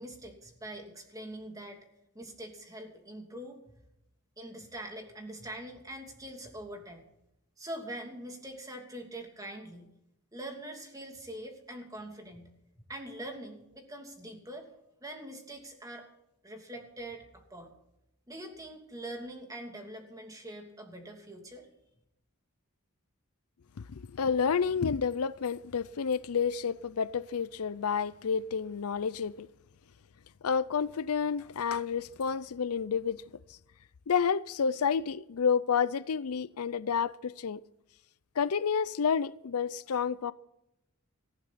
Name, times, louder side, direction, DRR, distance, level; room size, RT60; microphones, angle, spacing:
voice 1, 0.0-1.9 2.1-3.6 4.4-7.0 7.6-9.9 10.3-12.5 12.9-14.7 15.0-16.1 16.4-17.7 18.3-21.7, right 1 dB, 15° right, 2.8 m, -43 dB
voice 2, 23.8-29.5 30.4-33.2 34.1-37.6 38.4-40.3, left 6 dB, 80° left, 0.5 m, -30 dB
19.0 x 15.0 x 4.2 m
head